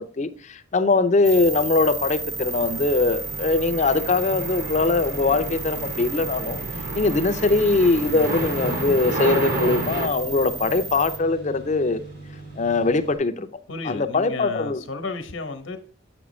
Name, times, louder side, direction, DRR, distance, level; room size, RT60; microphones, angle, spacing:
voice 1, 0.0-6.6 6.9-12.0 12.6-13.5 13.9-14.8, left 3 dB, 40° left, 10 dB, 0.5 m, -22 dB
sound 1, 1.2-11.2, right 4 dB, 15° right, 0.4 m, -34 dB
sound 2, 1.3-13.2, right 2 dB, 90° right, 3.5 m, -42 dB
sound 3, 2.2-10.1, right 1 dB, 50° right, 1.1 m, -31 dB
voice 2, 8.0-8.4 13.7-15.8, left 3 dB, 80° left, 7 dB, 1.1 m, -33 dB
7.7 x 6.1 x 3.1 m, 0.41 s
head